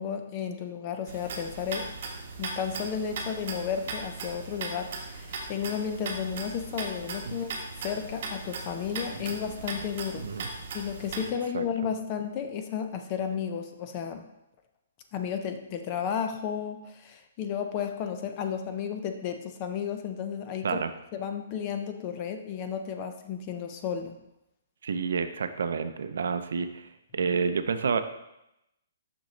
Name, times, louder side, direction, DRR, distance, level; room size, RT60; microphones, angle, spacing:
voice 1, 0.0-1.9 2.4-7.5 7.8-10.3 10.7-14.3 15.1-20.8 21.1-24.2, left 7 dB, 20° left, 6 dB, 0.5 m, -33 dB
sound 1, 1.1-11.3, right 3 dB, 40° right, 1.0 m, -38 dB
voice 2, 24.8-28.0, right 5 dB, 65° right, 10 dB, 0.5 m, -29 dB
6.4 x 6.0 x 3.2 m, 0.87 s
hypercardioid pair, 175°, 0 cm